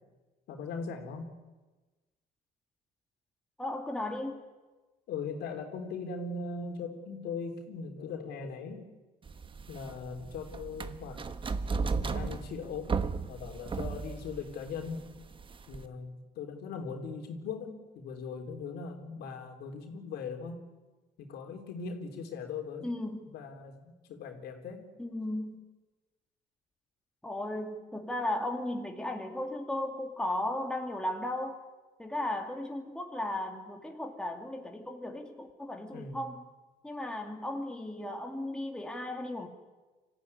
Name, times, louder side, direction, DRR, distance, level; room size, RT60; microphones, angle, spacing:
voice 1, 0.5-1.3 5.1-8.9 9.7-11.2 12.1-13.0 13.3-15.0 15.7-20.6 21.2-22.9 23.3-24.9 35.9-36.2, left 5 dB, 75° left, 3 dB, 3.8 m, -39 dB
voice 2, 3.6-4.4 22.8-23.3 25.0-25.6 27.2-31.6 32.0-36.5 36.8-39.5, left 1 dB, 5° left, 2 dB, 2.6 m, -35 dB
sound 1, 9.3-15.9, right 4 dB, 30° right, 1.2 m, -35 dB
25.0 x 15.0 x 9.8 m, 1.2 s
cardioid pair, 110°, 17 cm